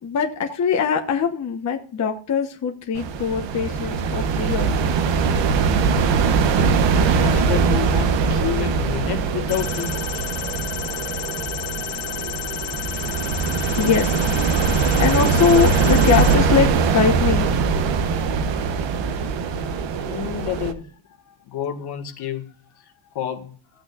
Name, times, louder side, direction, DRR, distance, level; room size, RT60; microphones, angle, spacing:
voice 1, 0.0-4.9 10.8-10.9 11.2-11.3 11.8-13.2 13.8-14.2 15.0-17.6 21.3-21.4, left 6 dB, 35° left, 1.1 m, -23 dB
sound 1, 3.0-20.7, right 5 dB, 60° right, 1.2 m, -21 dB
voice 2, 5.8-6.4 7.2-10.3 20.1-20.9 21.4-22.5 22.8-23.6, left 10 dB, 50° left, 1.8 m, -30 dB
sound 2, 9.5-16.3, left 17 dB, 85° left, 0.9 m, -32 dB
15.5 x 8.7 x 2.5 m
cardioid pair, 165°, 49 cm